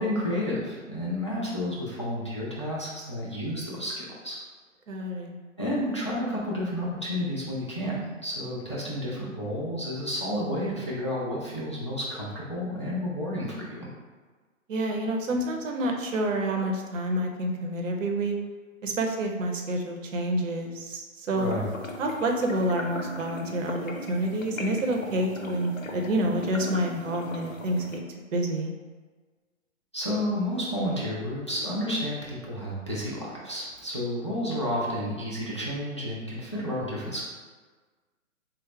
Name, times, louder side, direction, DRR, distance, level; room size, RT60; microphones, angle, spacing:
voice 1, 0.0-4.4 5.6-13.9 21.3-21.6 29.9-37.2, equal, 25° left, -7 dB, 0.3 m, -31 dB
voice 2, 4.9-5.3 14.7-18.3 18.8-21.5 22.0-28.0 28.3-28.7, right 1 dB, 65° right, 2 dB, 0.7 m, -28 dB
sound 1, 21.4-28.0, left 1 dB, 80° left, 0.7 m, -38 dB
3.9 x 2.0 x 4.3 m, 1.4 s
figure-of-eight pair, 135°, 40 cm